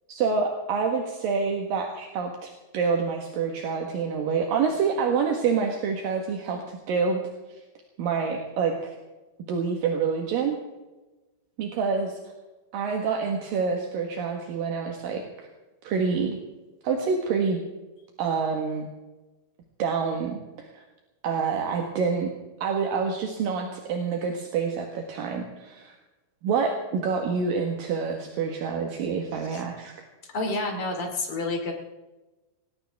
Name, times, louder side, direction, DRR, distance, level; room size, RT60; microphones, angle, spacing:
voice 1, 0.1-7.2 8.0-8.9 9.5-10.6 11.6-12.2 12.7-15.5 15.8-16.4 16.8-17.6 18.2-18.9 19.8-20.8 21.2-22.3 22.6-26.0 26.4-29.9, right 5 dB, 65° right, 2 dB, 2.5 m, -27 dB
voice 2, 30.3-31.7, left 2 dB, 35° left, 2 dB, 2.6 m, -29 dB
19.5 x 18.5 x 3.5 m, 1.1 s
omnidirectional pair, 5.7 m